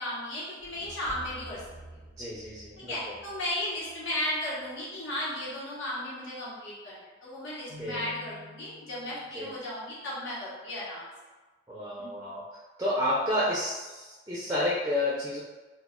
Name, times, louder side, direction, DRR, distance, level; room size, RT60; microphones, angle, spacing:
voice 1, 0.0-1.6 2.8-11.1 12.0-12.1, left 1 dB, 85° left, -8 dB, 0.9 m, -35 dB
sound 1, 0.6-4.7, right 1 dB, 65° left, 0.6 m, -49 dB
voice 2, 2.2-3.0 7.8-8.1 9.4-9.5 11.7-12.4 12.8-15.4, left 1 dB, 15° right, -7 dB, 0.4 m, -30 dB
Keyboard (musical), 7.7-9.6, left 4 dB, 70° right, 0.6 m, -49 dB
2.2 x 2.2 x 3.5 m, 1.2 s
head